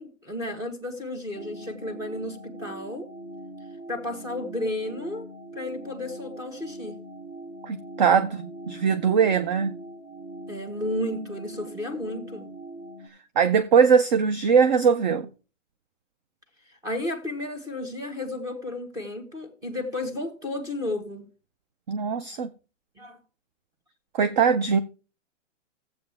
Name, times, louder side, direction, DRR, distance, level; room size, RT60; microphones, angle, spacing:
voice 1, 0.0-3.1 3.9-5.3 5.5-7.0 10.5-12.5 16.6-21.3 23.0-23.2, left 1 dB, 10° right, 1.4 m, -33 dB
sound 1, 1.3-13.1, right 2 dB, 85° right, 3.3 m, -42 dB
voice 2, 7.6-9.8 13.4-15.3 21.9-22.5 24.1-24.8, right 6 dB, 35° right, 0.5 m, -21 dB
14.5 x 7.9 x 3.4 m
hypercardioid pair, 150°, 38 cm